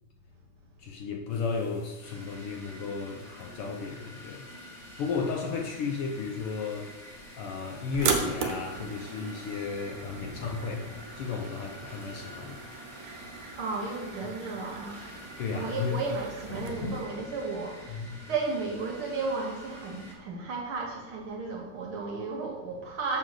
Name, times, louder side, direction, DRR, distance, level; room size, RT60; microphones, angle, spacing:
voice 1, 0.8-6.9 7.3-12.7 15.4-16.0 17.9-18.2, left 5 dB, 75° left, 2 dB, 1.3 m, -34 dB
sound 1, 1.3-17.1, left 2 dB, 55° left, 1.5 m, -48 dB
sound 2, 2.0-20.1, equal, ahead, 1.1 m, -48 dB
sound 3, 7.9-16.7, right 5 dB, 90° right, 2.5 m, -37 dB
voice 2, 13.5-15.0 15.5-23.2, right 4 dB, 65° right, 1 dB, 1.5 m, -34 dB
7.7 x 5.3 x 6.3 m, 1.3 s
omnidirectional pair, 3.3 m